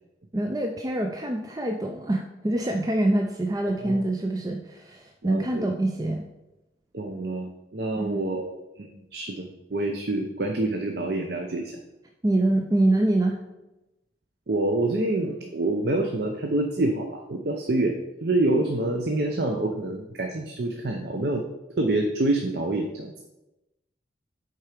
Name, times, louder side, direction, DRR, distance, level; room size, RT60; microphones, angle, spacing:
voice 1, 0.3-6.3 8.0-8.2 12.2-13.4, right 1 dB, 20° right, 3 dB, 0.4 m, -25 dB
voice 2, 5.2-5.6 6.9-11.7 14.5-18.0 18.2-21.4 21.8-23.1, right 2 dB, 65° right, 3 dB, 0.7 m, -27 dB
7.5 x 4.6 x 5.0 m, 0.97 s
head